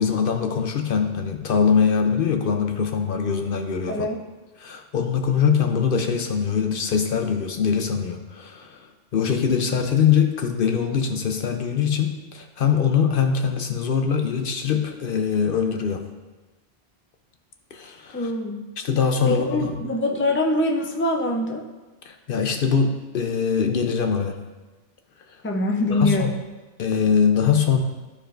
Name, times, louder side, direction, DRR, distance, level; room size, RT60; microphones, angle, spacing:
voice 1, 0.0-4.1 4.6-16.1 17.7-18.3 18.8-19.8 22.0-24.4 25.3-25.4 25.9-26.3 26.8-27.8, left 6 dB, 65° left, 5 dB, 0.8 m, -22 dB
voice 2, 18.1-18.6 19.3-21.7 25.4-26.3, left 1 dB, 15° left, 2 dB, 0.5 m, -24 dB
13.5 x 4.9 x 2.5 m, 1.2 s
omnidirectional pair, 1.0 m